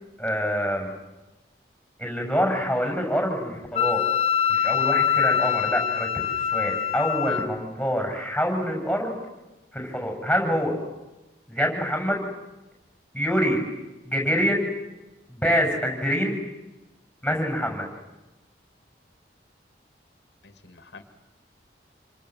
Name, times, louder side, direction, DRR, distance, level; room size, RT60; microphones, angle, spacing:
voice 1, 0.2-0.9 2.0-4.0 4.5-9.2 9.7-10.8 11.5-12.3 13.1-13.6 14.0-14.7 15.3-16.4 17.2-17.9, equal, 5° left, 1 dB, 7.2 m, -25 dB
Wind instrument woodwind instrument, 3.8-7.5, left 9 dB, 35° left, 1.3 m, -24 dB
voice 2, 20.4-21.0, left 4 dB, 80° left, 8 dB, 2.4 m, -44 dB
28.5 x 25.5 x 7.8 m, 1.0 s
head